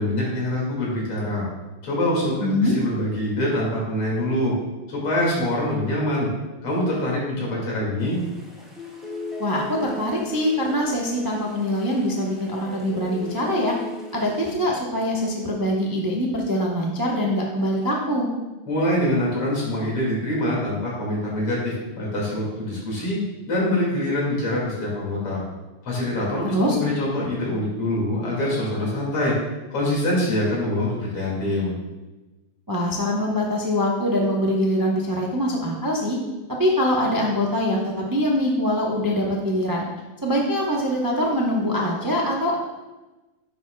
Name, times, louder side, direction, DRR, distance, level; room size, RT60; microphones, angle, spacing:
voice 1, 0.0-1.4 1.8-4.5 4.9-6.3 6.6-8.2 18.7-23.2 23.5-25.4 25.8-29.3 29.7-31.7, left 1 dB, 80° left, -4 dB, 3.4 m, -24 dB
voice 2, 2.4-2.7 9.4-13.7 14.1-18.3 26.5-26.8 32.7-36.2 36.6-39.8 40.2-42.6, equal, 30° right, -3 dB, 0.3 m, -23 dB
sound 1, 8.0-14.6, left 3 dB, ahead, 1.4 m, -38 dB
9.8 x 7.6 x 2.3 m, 1.1 s
omnidirectional pair, 2.4 m